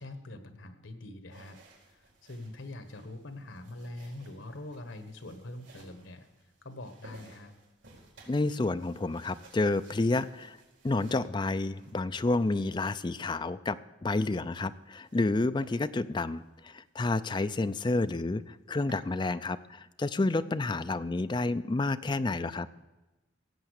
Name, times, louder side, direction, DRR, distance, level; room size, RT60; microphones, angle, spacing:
voice 1, 0.0-1.6 1.9-6.3 6.6-7.5, left 1 dB, 85° left, 9 dB, 1.4 m, -44 dB
sound 1, 1.3-13.0 14.3-15.3 15.6-15.8 16.3-16.5 16.9-17.0 17.2-17.3 17.6-18.1 18.5-19.1, right 2 dB, 85° right, 4.7 m, -58 dB
voice 2, 8.3-10.6 10.8-22.7, left 2 dB, 25° left, 12 dB, 0.4 m, -30 dB
16.5 x 8.1 x 6.5 m, 1.1 s
head